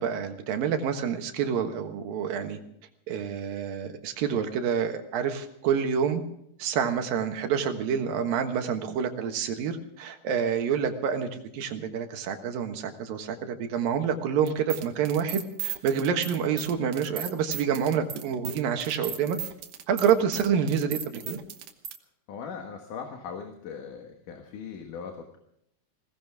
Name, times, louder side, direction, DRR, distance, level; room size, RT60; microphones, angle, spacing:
voice 1, 0.0-2.6 3.1-6.2 6.6-11.3 11.5-19.4 19.9-21.4, right 7 dB, 90° right, 6 dB, 3.2 m, -28 dB
sound 1, 14.5-22.0, right 9 dB, 60° right, 2.1 m, -36 dB
voice 2, 22.3-25.4, left 6 dB, 70° left, 3 dB, 3.1 m, -39 dB
21.0 x 18.5 x 3.6 m, 0.74 s
omnidirectional pair, 3.9 m